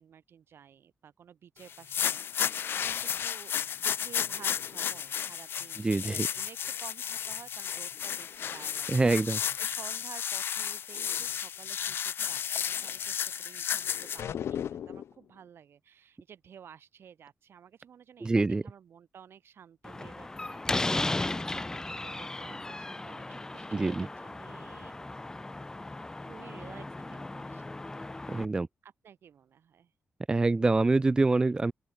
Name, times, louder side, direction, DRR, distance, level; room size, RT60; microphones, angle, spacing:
voice 1, 0.0-9.3 9.6-25.0 26.2-27.6 28.8-29.9, right 8 dB, 65° right, 6.8 m, -53 dB
sound 1, 1.7-14.2, left 8 dB, 60° left, 0.4 m, -33 dB
voice 2, 5.8-6.3 8.9-9.6 18.2-18.6 23.7-24.1 28.3-28.7 30.3-31.7, right 3 dB, 20° right, 0.5 m, -25 dB
sound 2, 14.2-15.2, left 9 dB, 80° left, 3.2 m, -35 dB
Slam, 19.8-28.5, left 2 dB, 15° left, 1.8 m, -36 dB
open air
wide cardioid pair, 160°, 4 cm